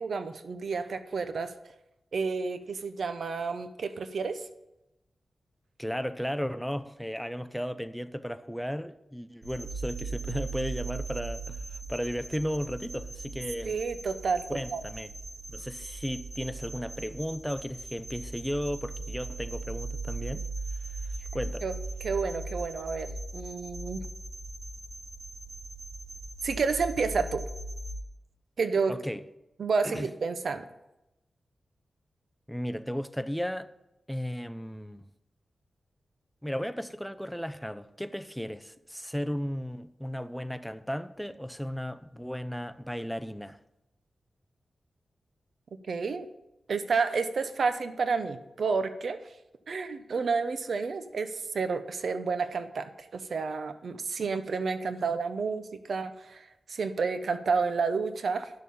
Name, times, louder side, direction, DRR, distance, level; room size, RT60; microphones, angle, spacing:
voice 1, 0.0-1.5 2.1-4.4 13.6-14.5 14.7-14.8 21.6-21.7 22.0-24.1 26.4-27.4 28.6-29.0 29.6-30.6 45.9-46.3 46.7-49.2 49.7-58.5, right 4 dB, 70° right, 0.8 m, -30 dB
voice 2, 5.8-13.8 14.5-15.1 15.5-20.4 21.3-21.7 28.9-29.2 29.8-30.1 32.5-33.7 34.1-35.0 36.4-43.6, equal, ahead, 0.6 m, -35 dB
sound 1, 9.4-28.0, right 3 dB, 45° right, 4.5 m, -39 dB
10.5 x 6.6 x 5.4 m
cardioid pair, 70°, 0 cm